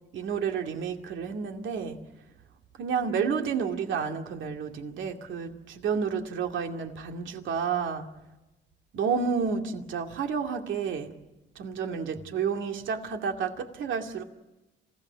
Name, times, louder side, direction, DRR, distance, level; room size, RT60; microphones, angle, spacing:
voice 1, 0.1-2.0 2.8-8.1 8.9-11.1 11.6-14.2, right 6 dB, 75° right, 4 dB, 2.4 m, -30 dB
27.0 x 16.5 x 9.7 m, 1.0 s
cardioid pair, 90°, 20 cm